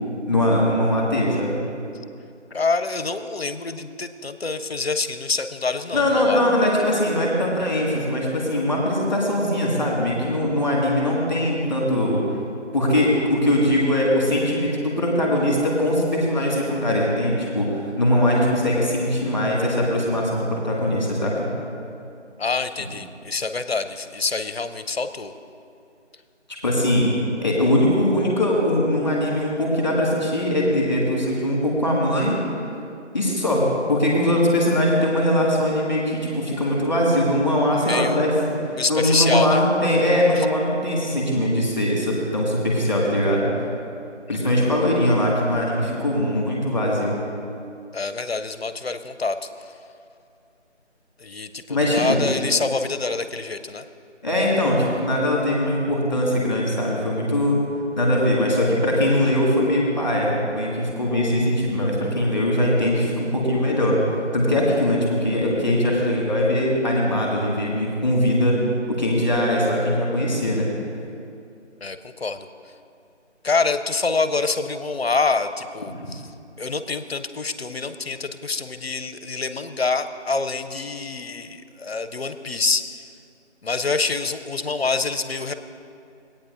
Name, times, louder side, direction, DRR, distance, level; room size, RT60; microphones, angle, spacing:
voice 1, 0.3-1.6 5.9-12.2 12.7-21.5 26.6-27.1 27.4-32.4 33.1-38.6 38.9-43.5 44.3-47.2 51.7-52.2 54.2-57.6 58.0-64.0 64.3-68.6 68.9-70.7, left 1 dB, 15° left, -3 dB, 1.5 m, -21 dB
voice 2, 2.5-6.4 22.4-25.3 37.7-38.3 38.7-39.6 40.4-40.5 44.3-44.4 47.9-49.4 51.2-53.8 71.8-72.5 73.4-76.2 76.6-82.8 83.6-85.5, left 4 dB, 60° left, 10 dB, 0.5 m, -26 dB
19.0 x 8.8 x 2.5 m, 2.5 s
figure-of-eight pair, 170°, 36 cm